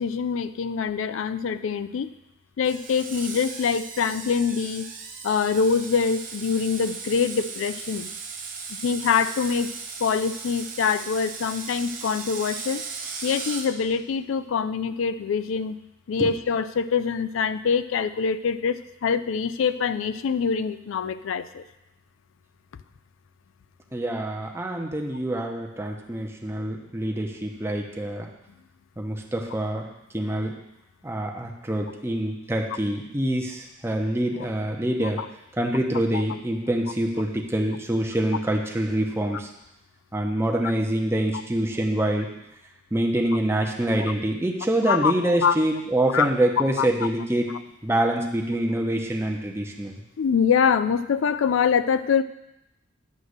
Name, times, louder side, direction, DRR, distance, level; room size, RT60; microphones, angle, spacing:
voice 1, 0.0-2.1 2.6-4.9 5.2-8.1 8.7-9.7 10.0-12.8 13.2-15.8 16.1-21.6 35.0-35.3 36.1-36.2 44.9-45.6 46.1-46.3 46.6-47.1 50.2-52.2, left 6 dB, 80° left, 12 dB, 0.4 m, -24 dB
Screech, 2.6-13.7, right 5 dB, 45° right, 0.9 m, -37 dB
voice 2, 23.9-28.3 29.0-29.9 30.1-30.5 31.0-35.2 35.6-39.5 40.1-42.3 42.9-47.5 47.8-49.9, right 1 dB, 15° right, 1 dB, 0.8 m, -25 dB
9.6 x 3.2 x 6.4 m, 0.89 s
head